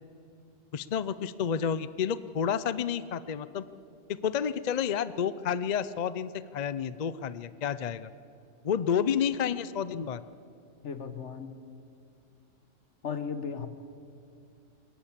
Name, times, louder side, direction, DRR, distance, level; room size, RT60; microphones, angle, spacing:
voice 1, 0.7-3.7 4.1-8.1 8.6-10.2, left 8 dB, 50° left, 15 dB, 0.5 m, -30 dB
voice 2, 10.8-11.6 13.0-13.7, left 6 dB, 65° left, 10 dB, 1.5 m, -35 dB
22.0 x 17.5 x 7.3 m, 2.6 s
omnidirectional pair, 1.3 m